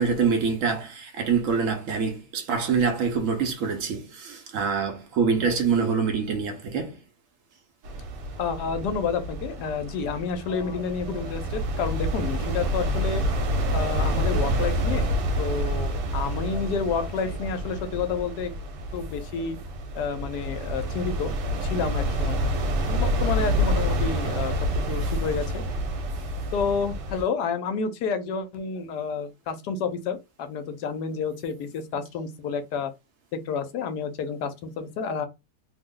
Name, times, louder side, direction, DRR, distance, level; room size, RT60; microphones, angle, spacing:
voice 1, 0.0-7.0 25.0-25.1, right 5 dB, 65° right, 0.8 m, -25 dB
sound 1, 7.8-27.2, equal, 80° right, 1.3 m, -28 dB
voice 2, 8.4-13.2 13.7-15.1 15.4-18.5 18.9-19.6 19.9-21.3 21.6-22.4 22.8-24.5 24.9-25.6 26.5-32.9 33.3-35.3, left 5 dB, 75° left, 1.1 m, -30 dB
2.9 x 2.0 x 3.6 m
omnidirectional pair, 1.8 m